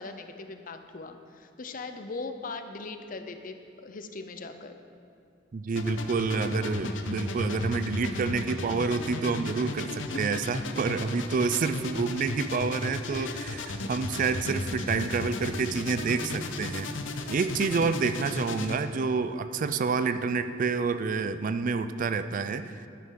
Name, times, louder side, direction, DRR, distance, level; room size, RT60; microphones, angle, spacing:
voice 1, 0.0-4.7 10.1-10.8 12.5-12.6 12.8-13.5, left 3 dB, 45° left, 8 dB, 0.6 m, -40 dB
voice 2, 5.5-16.9 17.3-22.9, right 4 dB, 45° right, 11 dB, 0.4 m, -28 dB
sound 1, 5.7-18.8, left 2 dB, 85° left, 0.7 m, -35 dB
11.5 x 9.6 x 3.8 m, 2.5 s
head